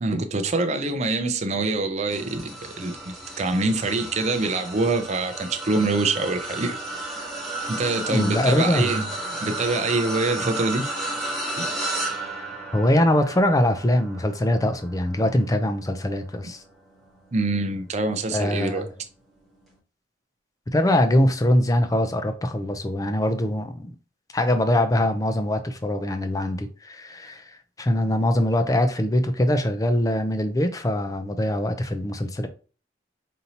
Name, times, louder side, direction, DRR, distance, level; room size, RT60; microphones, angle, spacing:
voice 1, 0.0-6.8 7.7-9.1 9.4-10.9 11.6-11.7 17.3-18.9, right 3 dB, 40° right, 0.5 m, -25 dB
sound 1, 2.1-17.6 18.1-18.4 19.6-19.7, right 2 dB, ahead, 1.1 m, -33 dB
voice 2, 8.1-9.0 12.7-16.6 18.3-18.9 20.7-23.9 24.3-27.4 27.8-32.5, left 1 dB, 20° left, 0.5 m, -22 dB
5.2 x 2.8 x 2.8 m
head